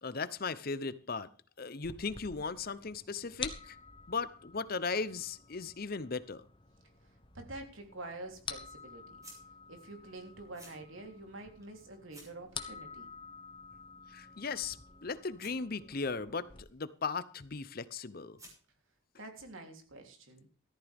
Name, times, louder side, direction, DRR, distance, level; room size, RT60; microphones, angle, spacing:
voice 1, 0.0-1.3 1.6-3.8 4.1-6.4 14.1-14.8 15.0-18.4, left 4 dB, 45° left, 0.7 m, -37 dB
sound 1, 1.8-16.6, left 5 dB, 25° left, 1.2 m, -49 dB
voice 2, 7.3-9.2 9.7-13.1 19.2-20.5, right 2 dB, 80° right, 3.4 m, -47 dB
sound 2, 7.5-19.0, right 1 dB, 15° right, 6.4 m, -62 dB
14.5 x 13.5 x 3.5 m
head